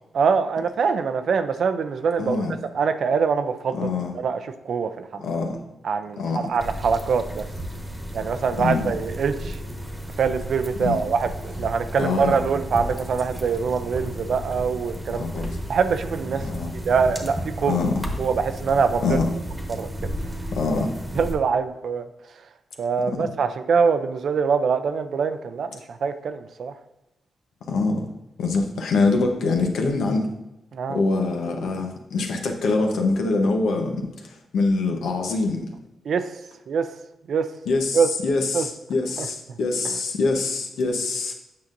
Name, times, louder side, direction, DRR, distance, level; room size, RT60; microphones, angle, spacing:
voice 1, 0.1-2.4 2.7-3.8 4.1-4.4 4.7-5.2 5.8-7.5 8.1-9.6 10.2-15.2 15.7-16.4 16.8-17.8 18.2-19.2 19.7-19.9 21.2-22.0 22.8-26.7 30.7-31.0 36.1-36.3 36.7-36.9 37.3-37.5 37.9-38.1 38.5-38.6 39.2-39.3, right 5 dB, 70° right, 10 dB, 0.5 m, -23 dB
voice 2, 2.2-2.6 3.7-4.2 5.2-5.6 6.2-6.5 8.6-8.9 10.8-11.1 12.0-12.5 15.1-15.6 16.4-16.7 17.6-18.1 19.0-19.3 20.5-20.9 23.1-23.3 27.7-28.0 28.4-30.3 30.9-35.7 37.6-41.3, left 3 dB, 85° left, 3 dB, 1.0 m, -24 dB
sound 1, 6.6-21.3, equal, 10° right, 1.2 m, -33 dB
8.6 x 5.7 x 2.6 m, 0.94 s
cardioid pair, 80°, 0 cm